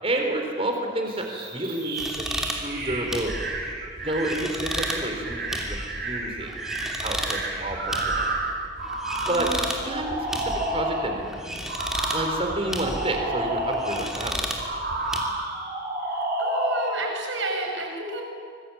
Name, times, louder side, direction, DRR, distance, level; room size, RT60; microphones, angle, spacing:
voice 1, 0.0-3.3 4.0-5.8 6.0-6.5 7.0-8.3 9.3-9.5 9.8-11.7 12.1-14.4, right 1 dB, 30° right, 3 dB, 4.0 m, -30 dB
sound 1, 1.0-11.2 11.7-14.1 14.6-17.1, right 2 dB, 50° right, 5.2 m, -30 dB
sound 2, 2.0-15.2, equal, 5° right, 2.8 m, -34 dB
voice 2, 9.3-9.6 16.0-18.2, right 2 dB, 70° right, 2 dB, 6.3 m, -31 dB
25.5 x 22.0 x 8.8 m, 2.3 s
head